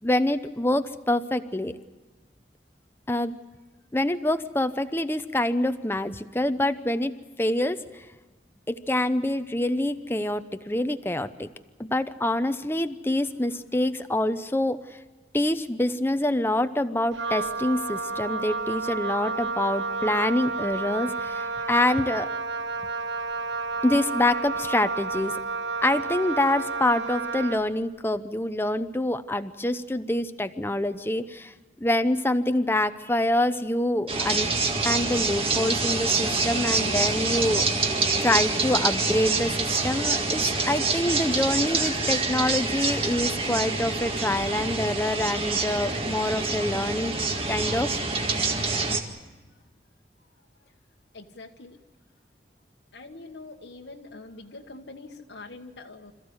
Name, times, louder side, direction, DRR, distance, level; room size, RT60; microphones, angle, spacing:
voice 1, 0.0-1.8 3.1-3.3 3.9-7.8 8.7-11.5 11.8-14.8 15.3-22.3 23.8-25.4 25.8-31.5 31.8-34.5 34.9-37.7 38.2-47.1 47.5-47.9, left 1 dB, 15° left, 10 dB, 0.8 m, -26 dB
Wind instrument woodwind instrument, 17.1-27.7, right 4 dB, 85° right, 1.1 m, -31 dB
sound 1, 34.1-49.0, right 3 dB, 30° right, 1.9 m, -26 dB
voice 2, 51.1-51.8 52.9-56.1, left 3 dB, 85° left, 1 dB, 1.4 m, -44 dB
26.5 x 14.5 x 9.5 m, 1.2 s
head